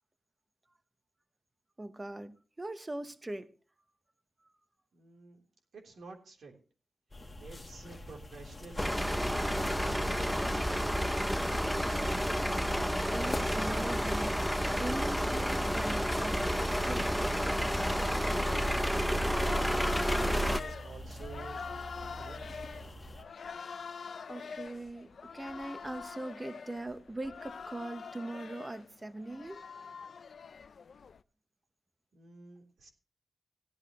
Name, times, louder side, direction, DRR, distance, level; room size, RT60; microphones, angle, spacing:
voice 1, 1.8-3.5 13.1-14.5 14.8-17.6 24.3-29.6, right 2 dB, 20° right, 10 dB, 0.9 m, -41 dB
voice 2, 4.9-5.4 5.7-6.5 7.4-9.1 9.5-11.0 20.2-21.6 22.0-22.7 32.1-32.9, right 3 dB, 80° right, 2 dB, 3.4 m, -50 dB
sound 1, 7.1-23.2, left 1 dB, 25° left, 1.2 m, -45 dB
sound 2, 8.8-20.6, equal, ahead, 0.5 m, -30 dB
sound 3, 15.4-31.2, left 5 dB, 60° left, 0.5 m, -45 dB
16.5 x 12.0 x 3.0 m, 0.38 s
wide cardioid pair, 140°, 0 cm